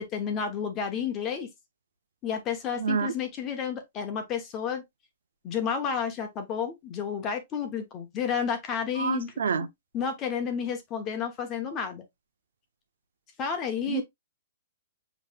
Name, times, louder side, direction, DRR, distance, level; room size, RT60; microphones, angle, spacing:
voice 1, 0.0-1.5 2.2-4.8 5.4-9.3 9.9-12.0 13.4-14.0, left 7 dB, 15° left, 0.9 m, -31 dB
voice 2, 2.7-3.1 9.0-9.7 13.9-14.0, right 6 dB, 90° right, 0.7 m, -28 dB
7.3 x 3.1 x 2.3 m
hypercardioid pair, 180°, 0 cm